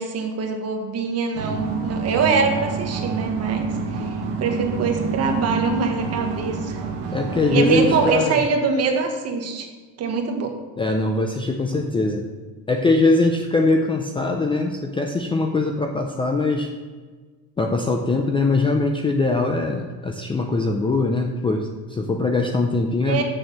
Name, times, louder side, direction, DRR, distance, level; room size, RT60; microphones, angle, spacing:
voice 1, 0.0-3.7 4.4-6.8 7.5-9.7 10.0-10.5 23.0-23.2, right 5 dB, 40° right, 4 dB, 1.4 m, -23 dB
sound 1, 1.3-8.1, right 4 dB, 75° right, 1.7 m, -28 dB
voice 2, 7.1-8.4 10.8-12.3 12.7-16.7 17.6-23.2, left 3 dB, 15° left, 3 dB, 0.4 m, -22 dB
6.5 x 6.4 x 6.9 m, 1.4 s
cardioid pair, 145°, 39 cm